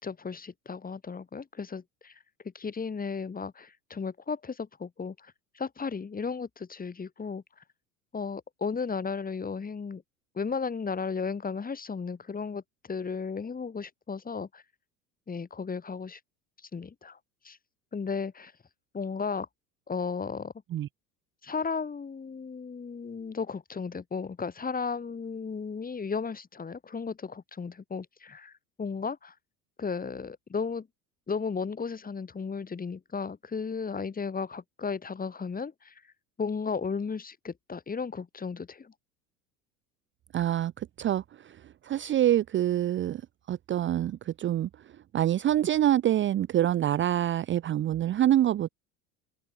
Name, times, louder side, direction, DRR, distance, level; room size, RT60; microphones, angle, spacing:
voice 1, 0.0-2.1 2.5-7.4 8.1-10.0 10.3-12.6 12.9-14.6 15.3-16.2 16.7-17.2 17.4-17.6 17.9-18.5 18.9-19.5 19.9-20.5 21.4-28.5 28.8-29.3 29.8-30.9 31.3-35.9 36.4-38.9, left 5 dB, 20° left, 3.1 m, -34 dB
voice 2, 40.3-43.2 43.5-44.7 45.1-48.7, right 12 dB, 25° right, 0.8 m, -26 dB
open air
figure-of-eight pair, 70°, 43 cm